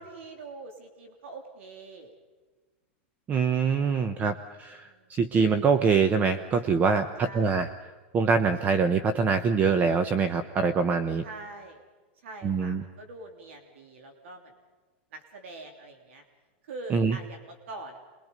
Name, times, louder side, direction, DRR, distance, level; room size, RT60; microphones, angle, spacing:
voice 1, 0.0-2.1 4.8-5.2 7.2-7.6 11.2-11.8 12.1-14.5 15.1-16.2 16.6-18.0, right 3 dB, 75° right, 4 dB, 3.1 m, -44 dB
voice 2, 3.3-7.7 8.1-11.2 12.4-12.8 16.9-17.2, right 5 dB, 25° right, 10 dB, 0.9 m, -24 dB
27.5 x 22.5 x 5.3 m, 1.3 s
supercardioid pair, 140°, 7 cm